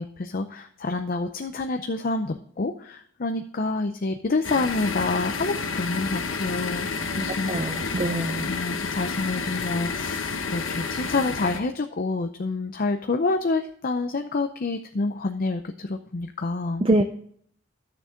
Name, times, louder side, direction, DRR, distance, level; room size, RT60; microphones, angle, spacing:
voice 1, 0.0-7.9 8.4-16.8, left 3 dB, 45° left, 7 dB, 0.6 m, -28 dB
sound 1, 4.4-11.6, left 4 dB, 80° left, 1.1 m, -30 dB
voice 2, 7.5-8.5 16.8-17.0, right 1 dB, 30° right, 7 dB, 0.6 m, -24 dB
12.0 x 6.9 x 3.7 m, 0.62 s
head